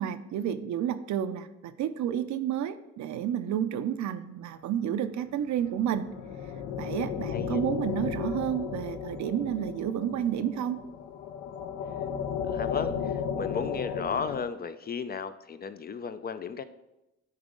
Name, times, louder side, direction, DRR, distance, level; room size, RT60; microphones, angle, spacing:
voice 1, 0.0-6.1 6.8-10.8, right 10 dB, 70° right, 11 dB, 0.5 m, -30 dB
sound 1, 5.6-14.4, left 8 dB, 75° left, 0.6 m, -34 dB
voice 2, 7.3-7.7 12.5-16.6, left 6 dB, 30° left, 11 dB, 0.4 m, -34 dB
9.6 x 4.0 x 3.8 m, 0.96 s
cardioid pair, 90°, 30 cm